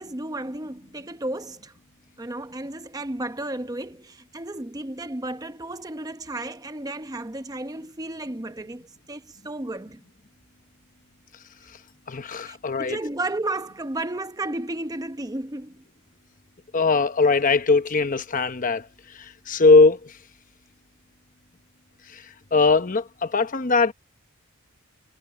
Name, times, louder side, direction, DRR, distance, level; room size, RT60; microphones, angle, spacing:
voice 1, 0.0-1.7 2.2-10.0 12.4-15.8, right 2 dB, 15° right, 0.8 m, -33 dB
voice 2, 12.1-13.0 16.7-18.9 19.1-20.1 22.1-22.2 22.5-23.9, left 3 dB, 40° left, 1.0 m, -20 dB
head